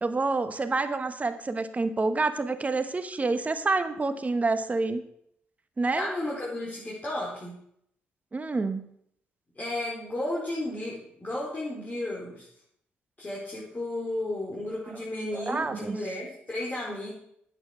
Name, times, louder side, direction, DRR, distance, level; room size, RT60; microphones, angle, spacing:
voice 1, 0.0-5.0 5.8-6.1 8.3-8.9 15.3-16.0, right 3 dB, 30° right, 10 dB, 1.2 m, -28 dB
voice 2, 5.9-7.5 9.6-12.4 13.2-17.1, left 1 dB, 30° left, -6 dB, 4.6 m, -33 dB
9.2 x 8.7 x 6.2 m, 0.72 s
supercardioid pair, 55°, 5 cm